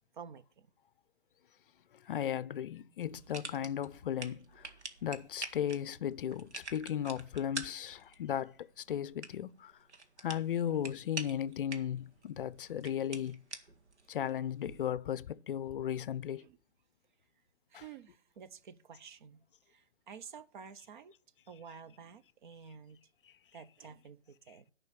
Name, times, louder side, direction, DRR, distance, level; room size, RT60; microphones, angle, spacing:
voice 1, 0.1-0.7 10.7-10.9 16.4-16.6 17.7-21.1 21.5-23.0 23.5-24.7, right 6 dB, 45° right, 0.7 m, -51 dB
voice 2, 2.0-4.7 5.0-9.7 10.2-13.4 14.1-16.4 17.7-17.8, left 10 dB, 50° left, 0.5 m, -36 dB
sound 1, 3.0-14.9, right 4 dB, 80° right, 1.7 m, -48 dB
10.5 x 5.4 x 7.4 m
hypercardioid pair, 140°, 34 cm